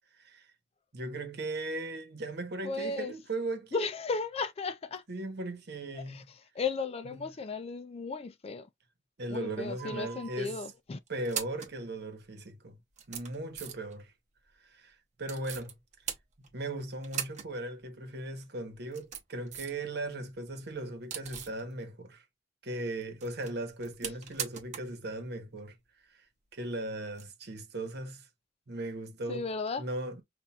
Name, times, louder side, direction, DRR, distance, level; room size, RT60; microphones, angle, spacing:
voice 1, 0.1-0.5 0.9-3.9 5.1-6.2 7.0-7.3 9.2-10.7 11.1-12.8 13.1-14.1 14.6-15.7 16.5-22.2 22.6-25.8 26.1-26.2 26.5-28.3 28.7-29.5 29.8-30.2, right 2 dB, 60° right, 1.1 m, -38 dB
voice 2, 2.6-3.1 3.7-5.0 6.0-6.2 6.6-8.7 9.3-11.0 29.3-29.8, left 4 dB, 30° left, 0.4 m, -35 dB
sound 1, 9.8-10.4 11.1-11.8 12.5-12.6 12.9-14.0 15.2-15.7 16.1-16.7 17.0-17.5 17.8-17.9 18.7-19.8 20.2-21.6 23.0-25.0 25.2-25.3 27.1-27.2, right 8 dB, 40° right, 0.8 m, -40 dB
5.6 x 2.5 x 2.3 m
head